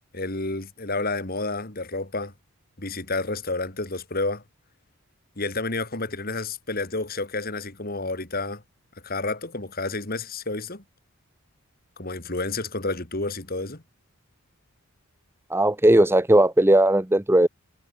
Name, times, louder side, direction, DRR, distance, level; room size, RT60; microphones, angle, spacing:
voice 1, 0.1-2.3 2.8-4.4 5.4-8.6 9.0-10.8 12.0-13.8, left 3 dB, 45° left, 3.0 m, -30 dB
voice 2, 15.5-17.5, right 1 dB, 10° right, 0.9 m, -17 dB
head